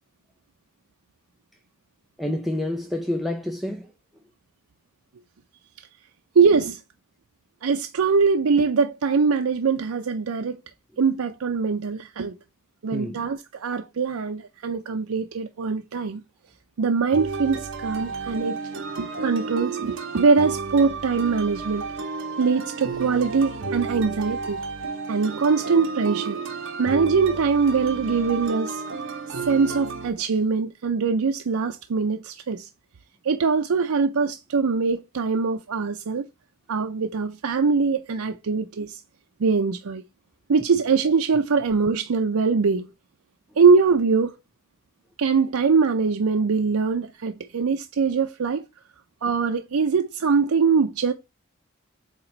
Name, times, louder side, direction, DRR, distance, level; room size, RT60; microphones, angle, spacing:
voice 1, 2.2-3.9 12.9-13.2, left 1 dB, ahead, 0.5 m, -28 dB
voice 2, 6.4-6.8 7.6-10.6 11.0-12.3 12.8-16.2 16.8-18.6 19.0-21.9 22.4-24.6 25.1-26.4 26.8-28.8 29.3-32.7 33.2-36.3 36.7-39.0 39.4-40.0 40.5-42.9 43.6-44.3 45.2-48.6 49.2-51.1, right 5 dB, 85° right, 0.5 m, -22 dB
sound 1, 17.1-30.1, right 4 dB, 60° right, 1.1 m, -32 dB
8.1 x 2.9 x 4.4 m
head